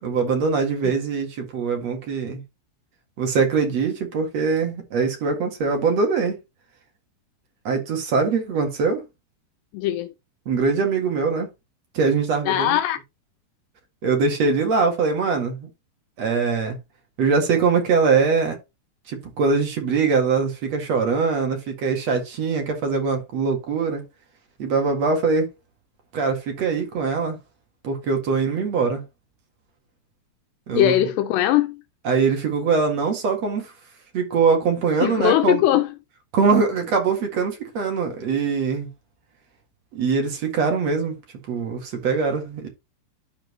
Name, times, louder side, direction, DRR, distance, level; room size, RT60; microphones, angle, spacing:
voice 1, 0.0-2.4 3.2-6.4 7.6-9.0 10.5-11.5 11.9-12.8 14.0-15.7 16.2-16.8 17.2-18.5 19.1-24.0 24.6-25.5 26.1-27.4 27.8-29.0 30.7-30.9 32.0-33.7 34.1-35.6 36.3-38.9 39.9-41.2 41.5-42.7, right 5 dB, 50° right, 2.4 m, -22 dB
voice 2, 9.7-10.1 12.5-13.0 30.7-31.8 35.0-35.9, left 13 dB, 85° left, 2.8 m, -20 dB
12.5 x 4.5 x 2.9 m
omnidirectional pair, 4.9 m